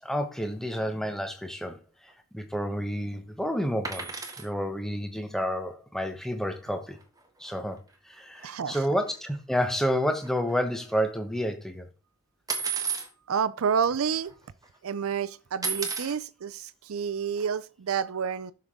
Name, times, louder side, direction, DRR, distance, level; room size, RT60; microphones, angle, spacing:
voice 1, 0.0-7.0 7.4-11.9, equal, ahead, 0.9 m, -30 dB
sound 1, 3.8-4.5 6.7-6.8 7.0-7.2 7.4-7.6 8.4-8.5 8.9-9.4 9.6-11.1 12.5-13.1 13.9-14.0 14.2-14.7 15.6-16.2 17.4-17.5, right 5 dB, 15° right, 1.3 m, -33 dB
voice 2, 8.4-8.8 13.3-14.3 14.8-18.5, right 7 dB, 75° right, 0.5 m, -29 dB
11.5 x 6.7 x 3.6 m
head